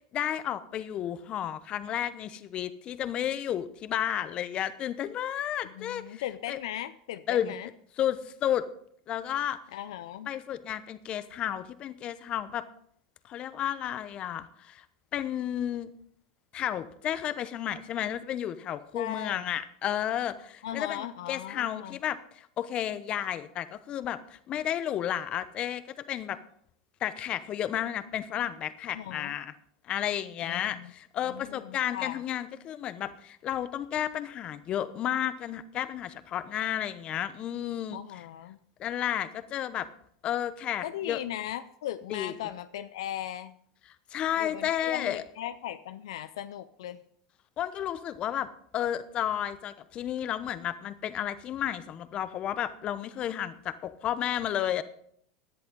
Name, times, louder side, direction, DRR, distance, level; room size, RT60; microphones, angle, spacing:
voice 1, 0.1-6.2 6.5-6.6 7.3-7.5 8.0-8.7 9.1-9.6 10.3-12.6 13.3-14.8 15.1-15.9 16.5-26.4 27.0-29.5 29.8-38.0 38.8-39.9 40.2-41.2 42.1-42.3 44.1-45.2 47.6-54.8, left 10 dB, 40° left, 13 dB, 1.0 m, -32 dB
voice 2, 5.6-7.7 9.7-10.3 18.9-19.4 20.6-22.0 28.9-29.4 30.4-30.9 31.3-32.2 37.9-38.6 40.8-43.6 44.4-47.0, left 12 dB, 75° left, 12 dB, 0.5 m, -38 dB
16.5 x 10.5 x 3.9 m, 0.65 s
hypercardioid pair, 105°, 3 cm